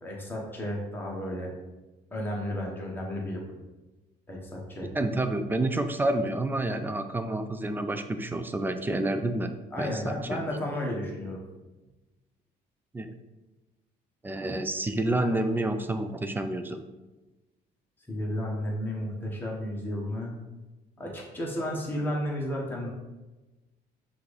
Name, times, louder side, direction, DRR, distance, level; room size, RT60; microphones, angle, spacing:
voice 1, 0.0-1.5 2.1-3.6 4.3-4.9 9.7-11.4 18.1-20.3 21.0-22.9, left 1 dB, 10° left, -3 dB, 1.1 m, -33 dB
voice 2, 4.9-10.4 12.9-13.1 14.2-16.8, right 2 dB, 10° right, 8 dB, 0.3 m, -29 dB
5.7 x 2.6 x 3.3 m, 1.1 s
cardioid pair, 110°, 17 cm